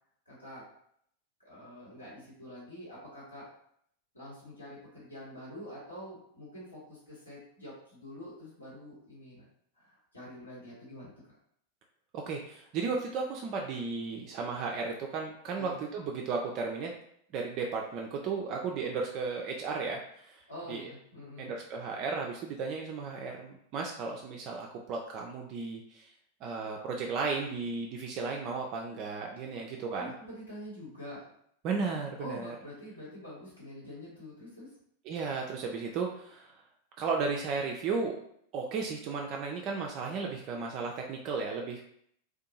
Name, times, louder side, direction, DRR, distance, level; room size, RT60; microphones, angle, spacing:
voice 1, 0.3-0.6 1.4-3.5 4.1-9.4 9.8-11.1 15.6-15.7 20.5-21.5 30.0-31.2 32.2-34.7, equal, 80° left, -8 dB, 1.2 m, -46 dB
voice 2, 12.1-16.9 17.3-20.4 20.7-20.9 21.4-26.1 26.4-30.1 31.6-32.5 35.1-36.6 37.0-38.2 38.5-41.8, right 4 dB, 40° right, 0 dB, 0.3 m, -34 dB
2.6 x 2.2 x 2.8 m, 0.68 s
figure-of-eight pair, 90°, 0 cm